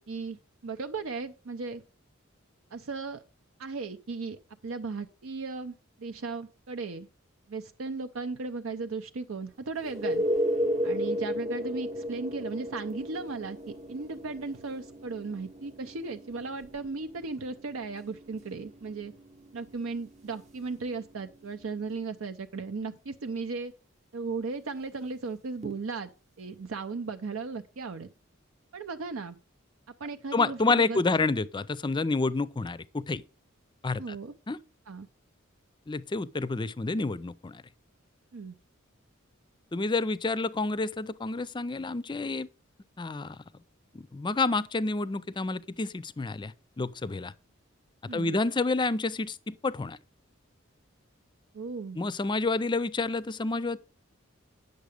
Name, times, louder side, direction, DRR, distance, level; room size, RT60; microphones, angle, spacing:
voice 1, 0.0-1.8 2.7-3.2 3.6-7.1 7.5-10.2 10.8-19.1 19.5-23.7 24.1-26.1 26.4-28.1 28.7-29.4 30.0-31.0 34.0-34.3 34.9-35.1 38.3-38.6 48.1-48.3 51.5-52.0, right 4 dB, 80° right, 0.6 m, -36 dB
sound 1, 9.8-21.4 25.6-25.7, equal, 35° right, 0.8 m, -34 dB
voice 2, 30.3-33.2 33.8-34.2 34.5-34.6 35.9-37.6 39.7-42.5 43.0-43.4 43.9-47.3 48.1-50.0 52.0-53.8, left 3 dB, 25° left, 0.4 m, -29 dB
9.4 x 6.7 x 5.0 m
head